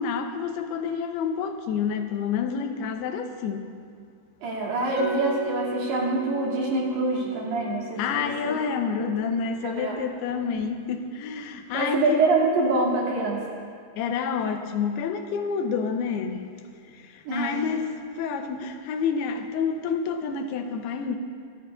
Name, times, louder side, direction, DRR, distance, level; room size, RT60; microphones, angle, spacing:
voice 1, 0.0-3.7 8.0-12.3 14.0-16.5 16.9-21.2, left 6 dB, 85° left, 6 dB, 2.8 m, -29 dB
voice 2, 4.4-8.5 9.3-10.0 11.7-13.4 17.3-17.6, right 2 dB, 80° right, -4 dB, 4.6 m, -25 dB
Mallet percussion, 5.0-10.8, right 5 dB, 35° left, 1.2 m, -39 dB
27.0 x 12.5 x 2.5 m, 2.2 s
omnidirectional pair, 4.6 m